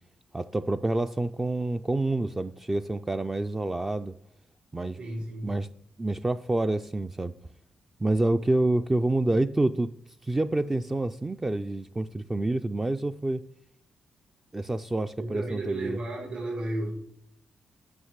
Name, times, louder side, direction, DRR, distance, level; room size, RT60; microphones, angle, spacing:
voice 1, 0.3-4.2 4.7-5.0 5.4-5.7 6.0-7.3 8.0-9.9 10.2-13.4 14.5-16.0, right 2 dB, 15° right, 9 dB, 0.4 m, -27 dB
voice 2, 5.0-5.5 15.2-16.9, right 2 dB, 50° right, -4 dB, 5.6 m, -33 dB
9.5 x 5.8 x 8.0 m, 0.72 s
cardioid pair, 110°, 2 cm